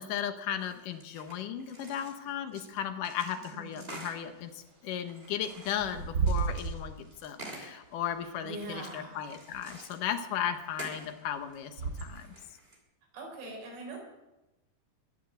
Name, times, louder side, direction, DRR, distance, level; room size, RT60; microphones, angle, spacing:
voice 1, 0.0-4.5 4.8-12.3, left 9 dB, 65° left, 8 dB, 2.2 m, -36 dB
sound 1, 0.6-2.8 3.0-4.2 5.1-7.7 8.5-10.3 10.6-11.2 11.5-12.8, right 2 dB, 15° right, 2.5 m, -48 dB
voice 2, 3.3-3.9 8.4-9.2 13.1-14.0, right 2 dB, 85° right, 0 dB, 6.4 m, -42 dB
Bird / Wind, 3.7-12.4, right 5 dB, 35° right, 3.3 m, -37 dB
21.5 x 7.4 x 7.9 m, 1.0 s
omnidirectional pair, 4.8 m